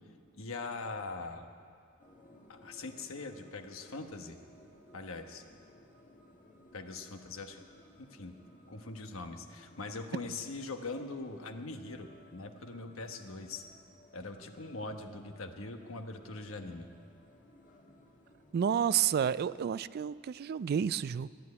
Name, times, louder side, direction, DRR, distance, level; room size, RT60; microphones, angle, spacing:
voice 1, 0.3-1.5 2.5-4.4 4.9-5.4 6.7-7.6 8.0-8.3 8.7-13.6 14.1-16.9, left 3 dB, 70° left, 6 dB, 1.2 m, -42 dB
sound 1, 2.0-18.6, left 1 dB, 40° left, 1.8 m, -60 dB
voice 2, 18.5-21.3, right 8 dB, 50° right, 17 dB, 0.3 m, -30 dB
14.0 x 10.5 x 9.5 m, 2.3 s
head